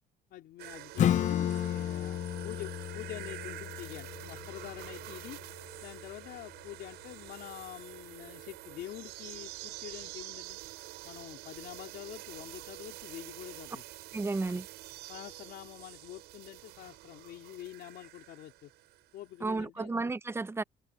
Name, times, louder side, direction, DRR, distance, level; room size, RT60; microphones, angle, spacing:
voice 1, 0.3-5.4 5.8-10.6 11.0-13.8 14.4-14.6 15.1-18.7 19.1-19.9, left 13 dB, 75° left, 4.0 m, -46 dB
sound 1, 0.6-19.1 19.4-19.5, right 17 dB, 85° right, 5.9 m, -47 dB
Acoustic guitar / Strum, 1.0-6.2, left 11 dB, 45° left, 0.5 m, -33 dB
voice 2, 14.1-14.7 19.4-20.6, right 3 dB, 15° right, 0.7 m, -32 dB
cardioid pair, 110°, 17 cm